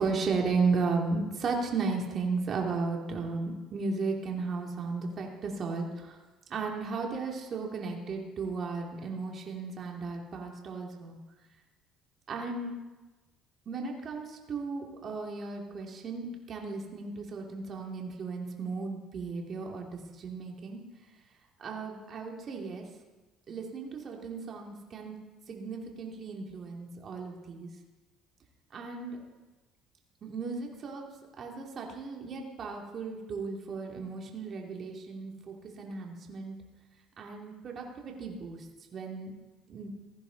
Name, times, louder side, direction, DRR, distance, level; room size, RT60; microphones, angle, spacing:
voice 1, 0.0-6.2 6.5-11.2 12.3-12.7 13.7-20.8 21.6-22.8 23.5-25.1 25.5-27.7 28.7-29.2 30.2-31.1 31.4-36.6 37.2-38.6 38.9-39.3 39.7-39.9, right 4 dB, 45° right, 0 dB, 2.8 m, -35 dB
17.0 x 14.0 x 4.1 m, 1.2 s
supercardioid pair, 90°, 0 cm